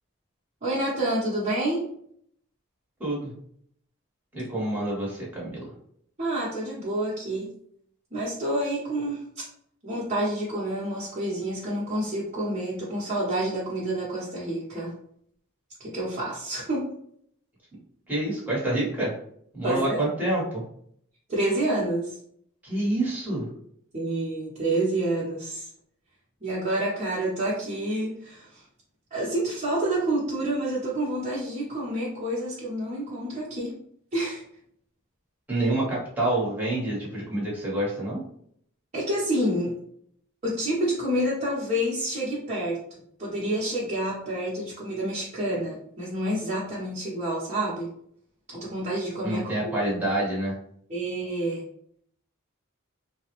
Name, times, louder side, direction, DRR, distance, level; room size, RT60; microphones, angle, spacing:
voice 1, 0.6-1.8 6.2-7.5 8.1-9.2 9.8-14.9 15.8-16.9 19.6-20.1 21.3-22.2 23.9-25.7 26.4-28.6 29.1-33.7 34.1-34.4 38.9-39.7 40.4-42.8 43.2-47.9 48.5-49.7 50.9-51.6, right 1 dB, 35° right, -8 dB, 0.9 m, -28 dB
voice 2, 3.0-3.3 4.3-5.6 18.1-19.1 19.5-20.6 22.6-23.5 35.5-38.2 49.2-50.6, right 1 dB, 5° right, -7 dB, 1.0 m, -27 dB
3.5 x 2.0 x 2.9 m, 0.67 s
head